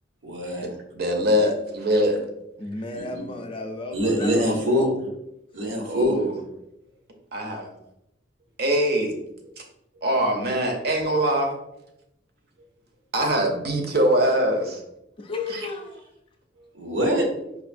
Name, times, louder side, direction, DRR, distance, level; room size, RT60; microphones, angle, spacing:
voice 1, 0.2-0.7 2.9-3.0 3.9-4.9 5.5-6.1 16.7-17.3, equal, 80° right, 1 dB, 0.9 m, -24 dB
voice 2, 0.9-2.2 5.9-6.3 7.3-7.7 8.6-9.1 10.0-11.5 13.1-14.8 15.5-15.6, equal, 55° right, 3 dB, 0.7 m, -22 dB
voice 3, 2.6-5.1 15.2-16.0, left 3 dB, 30° left, 3 dB, 0.4 m, -33 dB
4.8 x 2.5 x 2.5 m, 0.83 s
head